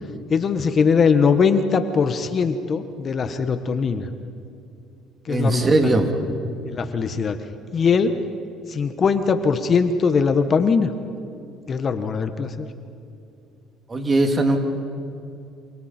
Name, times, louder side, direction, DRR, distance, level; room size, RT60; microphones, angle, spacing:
voice 1, 0.3-4.1 5.3-5.9 6.7-7.4 7.7-8.2 8.7-10.9 11.7-12.7, left 5 dB, 40° left, 9 dB, 1.4 m, -21 dB
voice 2, 5.3-6.1 13.9-14.6, right 2 dB, 30° right, 4 dB, 3.0 m, -19 dB
28.0 x 27.5 x 4.5 m, 2.6 s
supercardioid pair, 90°, 0 cm